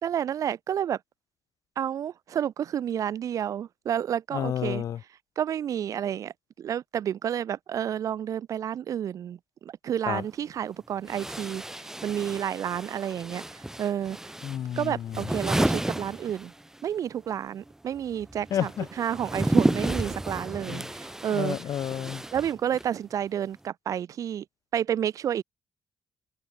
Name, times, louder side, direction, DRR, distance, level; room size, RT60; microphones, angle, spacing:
voice 1, 0.0-1.0 1.8-4.8 5.4-14.2 14.8-16.5 16.8-18.7 19.0-21.6 22.3-24.4 24.7-25.4, right 9 dB, 50° right, 0.7 m, -30 dB
voice 2, 4.3-5.0 10.1-10.2 14.4-15.3 18.5-18.9 20.7-20.9 21.3-22.2, left 10 dB, 55° left, 0.4 m, -30 dB
sound 1, 10.1-10.2 11.0-16.9 17.1-23.0, right 1 dB, 5° right, 1.5 m, -31 dB
cardioid pair, 150°, 7 cm